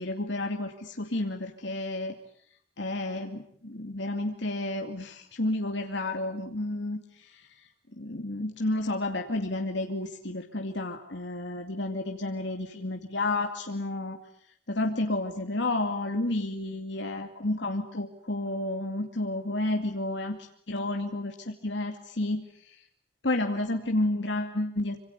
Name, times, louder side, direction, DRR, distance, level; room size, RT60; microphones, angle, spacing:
voice 1, 0.0-2.1 2.8-7.5 8.0-14.2 14.7-22.7 23.2-25.1, left 2 dB, 60° left, 4 dB, 2.4 m, -31 dB
27.0 x 26.0 x 8.2 m, 0.65 s
head